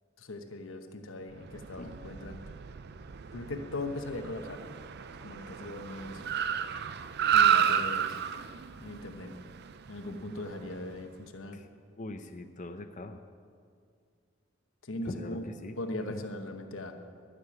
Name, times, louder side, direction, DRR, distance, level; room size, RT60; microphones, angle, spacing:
voice 1, 0.2-2.4 3.3-4.6 5.2-6.2 7.3-8.2 8.8-9.3 9.9-11.6 14.8-15.5 15.8-16.9, left 2 dB, 90° left, 5 dB, 1.1 m, -39 dB
Car, 1.4-11.0, right 8 dB, 55° right, 0.5 m, -31 dB
voice 2, 12.0-13.2 15.1-15.8 16.1-16.2, left 2 dB, 40° left, 5 dB, 0.6 m, -41 dB
13.0 x 6.8 x 9.6 m, 2.2 s
head